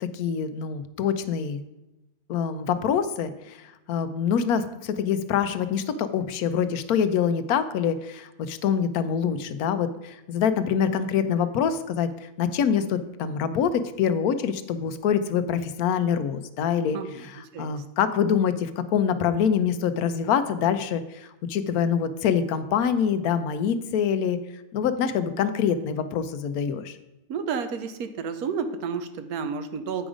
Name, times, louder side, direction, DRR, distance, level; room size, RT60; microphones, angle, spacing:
voice 1, 0.0-1.6 2.3-3.6 3.9-12.1 12.4-24.4 24.7-27.0, left 7 dB, 80° left, 11 dB, 1.1 m, -25 dB
voice 2, 16.9-17.3 17.5-17.8 27.3-30.1, right 6 dB, 85° right, 9 dB, 1.2 m, -31 dB
8.8 x 5.1 x 4.9 m, 0.97 s
omnidirectional pair, 1.6 m